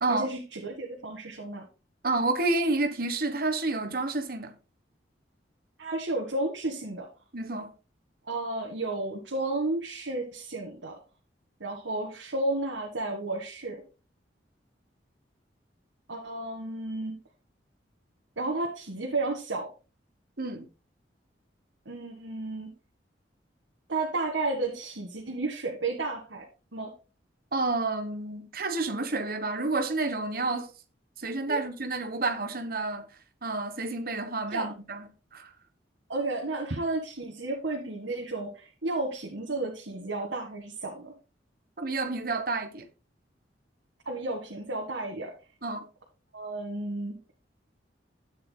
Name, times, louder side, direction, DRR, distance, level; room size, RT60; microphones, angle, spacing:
voice 1, 0.1-1.7 5.8-7.1 8.3-10.9 11.6-13.8 16.1-17.2 18.4-19.7 21.9-22.7 23.9-26.5 26.7-26.9 31.5-31.6 34.5-34.7 36.1-41.1 44.1-45.3 46.3-47.2, right 2 dB, 85° right, 1.7 m, -32 dB
voice 2, 2.0-4.5 7.3-7.7 20.4-20.6 27.5-30.7 31.2-33.1 33.4-35.0 35.3-35.5 41.8-42.8 45.6-45.9, right 2 dB, 50° right, 1.2 m, -29 dB
12.0 x 8.5 x 2.2 m
head